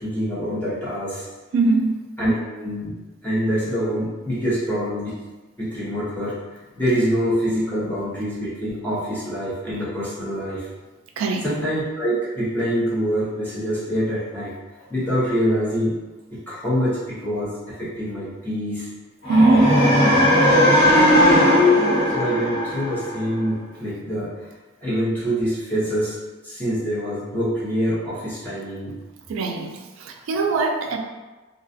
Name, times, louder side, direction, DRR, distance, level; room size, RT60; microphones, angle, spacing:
voice 1, 0.0-1.3 2.2-2.9 3.2-5.2 5.6-10.7 11.4-14.5 14.9-15.9 16.3-18.9 22.1-24.3 24.8-26.2 26.4-29.0, equal, 10° left, -11 dB, 0.8 m, -25 dB
voice 2, 1.5-2.0 11.2-11.5 19.3-19.9 29.3-31.0, right 3 dB, 70° right, 2 dB, 0.3 m, -21 dB
sound 1, 19.2-23.3, left 1 dB, 50° left, 1.4 m, -17 dB
2.3 x 2.3 x 2.5 m, 1.2 s
head